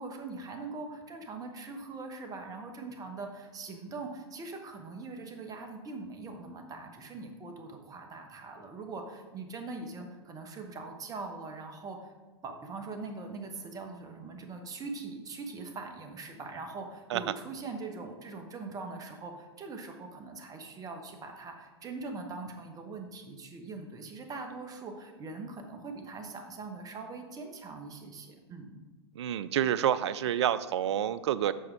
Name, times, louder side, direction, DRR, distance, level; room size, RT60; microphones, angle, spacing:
voice 1, 0.0-12.1 12.4-28.8, right 3 dB, 25° right, 4 dB, 1.3 m, -42 dB
voice 2, 29.2-31.5, right 10 dB, 70° right, 16 dB, 0.4 m, -28 dB
7.7 x 5.2 x 4.8 m, 1.2 s
hypercardioid pair, 100°, 15 cm